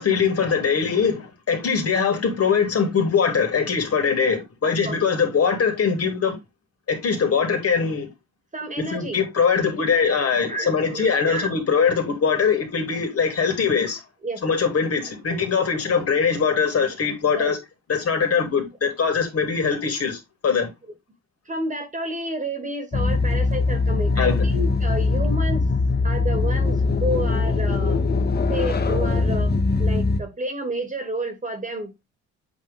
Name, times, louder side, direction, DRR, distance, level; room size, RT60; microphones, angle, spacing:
voice 1, 0.0-6.4 6.9-8.1 8.8-14.0 14.4-17.6 17.9-20.7 24.2-24.3, left 6 dB, 50° left, 2.7 m, -22 dB
voice 2, 4.6-5.0 8.5-9.2 10.5-11.5 14.2-14.4 15.3-15.5 17.3-17.5 21.5-25.7 26.0-28.0 28.5-31.9, right 1 dB, 25° right, 2.2 m, -30 dB
sound 1, 22.9-30.2, left 3 dB, 35° left, 1.3 m, -21 dB
8.2 x 3.6 x 3.4 m
cardioid pair, 90°, 30 cm